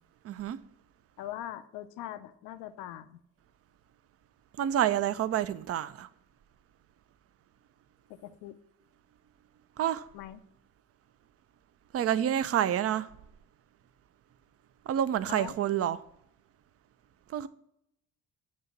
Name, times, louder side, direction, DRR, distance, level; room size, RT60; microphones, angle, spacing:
voice 1, 0.2-0.6 4.6-6.1 9.8-10.1 11.9-13.1 14.9-16.0 17.3-17.5, right 10 dB, 45° right, 0.5 m, -28 dB
voice 2, 1.2-3.2 8.1-8.6 10.1-10.4 15.3-15.6, left 12 dB, 75° left, 0.5 m, -41 dB
7.4 x 2.8 x 5.9 m
hypercardioid pair, 55°, 32 cm